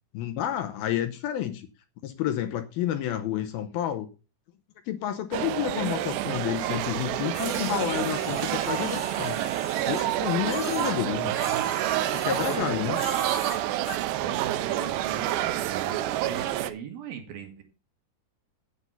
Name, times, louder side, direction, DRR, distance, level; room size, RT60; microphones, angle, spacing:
voice 1, 0.1-1.7 2.0-4.1 4.9-9.4 9.9-11.3 12.0-13.0, left 11 dB, 75° left, 2.5 m, -30 dB
sound 1, 5.3-16.7, right 14 dB, 85° right, 2.9 m, -28 dB
sound 2, 7.3-11.0 11.3-12.7 12.9-14.0, left 2 dB, 30° left, 1.5 m, -39 dB
voice 2, 10.7-12.1 12.5-13.1 14.2-17.6, right 7 dB, 65° right, 3.3 m, -39 dB
9.4 x 8.5 x 5.6 m
omnidirectional pair, 4.9 m